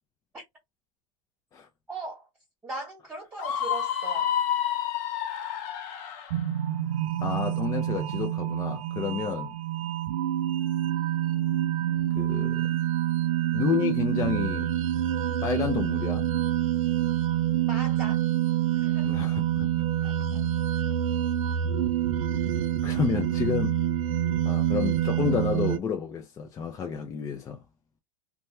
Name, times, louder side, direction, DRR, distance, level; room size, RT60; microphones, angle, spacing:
voice 1, 1.9-2.3 2.6-4.3 17.6-18.3 18.7-19.3 20.0-20.4, right 3 dB, 10° right, 1.3 m, -39 dB
Screaming, 3.4-6.3, left 9 dB, 50° left, 0.7 m, -29 dB
sound 1, 6.3-25.8, right 11 dB, 80° right, 0.4 m, -27 dB
voice 2, 7.2-9.5 12.1-12.8 13.5-14.7 15.4-16.3 19.0-20.1 22.8-23.8 24.4-27.6, left 7 dB, 20° left, 0.4 m, -30 dB
2.7 x 2.2 x 3.1 m
supercardioid pair, 135°, 17 cm